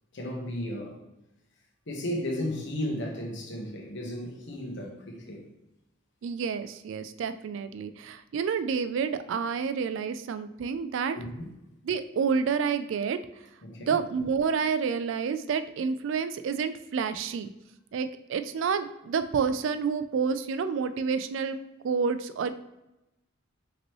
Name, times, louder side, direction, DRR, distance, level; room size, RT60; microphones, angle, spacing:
voice 1, 0.1-1.0 1.9-5.4 11.1-11.6 13.6-14.0, left 1 dB, 65° left, 1.1 m, -34 dB
voice 2, 6.2-11.2 11.8-13.2 13.8-17.5 17.9-21.6 21.8-22.5, right 6 dB, 65° right, 0.3 m, -29 dB
5.1 x 3.0 x 3.0 m
head